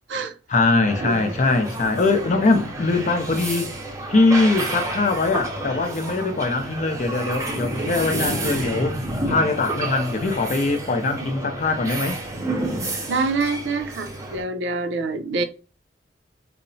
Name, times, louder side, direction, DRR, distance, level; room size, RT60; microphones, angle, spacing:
voice 1, 0.5-3.7 4.1-12.2, left 3 dB, 45° left, 0.5 m, -22 dB
sound 1, 0.9-14.4, right 1 dB, 20° right, 0.6 m, -30 dB
voice 2, 1.0-1.3 13.1-15.4, right 3 dB, 85° right, 0.5 m, -26 dB
2.9 x 2.0 x 2.6 m
head